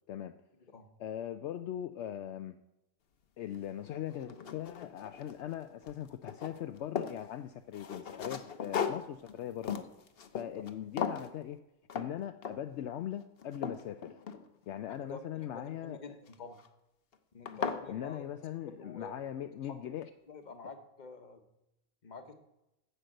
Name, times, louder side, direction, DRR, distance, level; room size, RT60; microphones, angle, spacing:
voice 1, 1.0-2.5 3.4-9.9 10.3-11.6 11.9-14.2 14.7-16.1 17.4-20.1, left 11 dB, 70° left, 9 dB, 0.8 m, -40 dB
sound 1, 3.5-3.6 4.1-5.6 5.8-7.2 7.7-10.7 11.0-11.3 11.9-12.1 12.4-12.8 13.2-14.8 16.3-16.7 17.1-17.2 17.5-17.8, left 7 dB, 55° left, 1.0 m, -38 dB
voice 2, 14.9-16.6 17.3-18.3 18.8-19.3 19.6-19.7 20.3-21.4 22.0-22.3, left 4 dB, 40° left, 8 dB, 1.2 m, -48 dB
9.9 x 6.7 x 7.7 m, 0.89 s
omnidirectional pair, 1.3 m